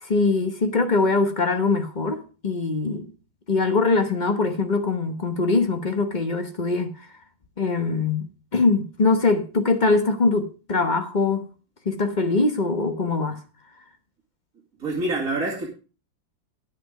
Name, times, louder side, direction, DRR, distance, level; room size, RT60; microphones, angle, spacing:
voice 1, 0.0-3.1 3.5-6.9 7.6-11.5 11.8-13.4, left 3 dB, 30° left, 0.9 m, -22 dB
voice 2, 14.8-15.7, right 2 dB, 45° right, 2.7 m, -26 dB
10.5 x 8.2 x 4.8 m
omnidirectional pair, 2.1 m